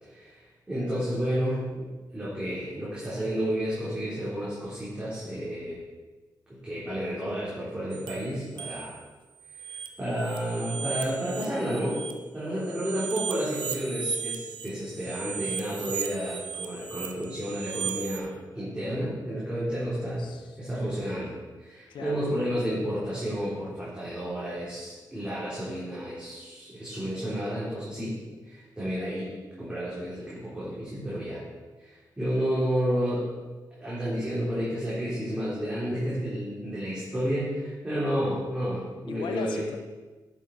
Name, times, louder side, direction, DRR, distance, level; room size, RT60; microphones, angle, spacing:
voice 1, 0.0-5.8 6.5-9.0 9.6-12.0 12.3-20.2 20.6-21.3 21.6-28.2 28.4-31.4 31.8-33.3 33.8-39.7, equal, 15° right, -10 dB, 3.5 m, -31 dB
sound 1, 7.9-9.0 9.4-12.1 12.6-18.2, right 7 dB, 90° right, 0.8 m, -36 dB
voice 2, 20.2-21.0 21.9-22.3 39.1-39.8, left 7 dB, 85° left, 7 dB, 0.4 m, -39 dB
10.5 x 7.3 x 4.1 m, 1.3 s
cardioid pair, 95°, 8 cm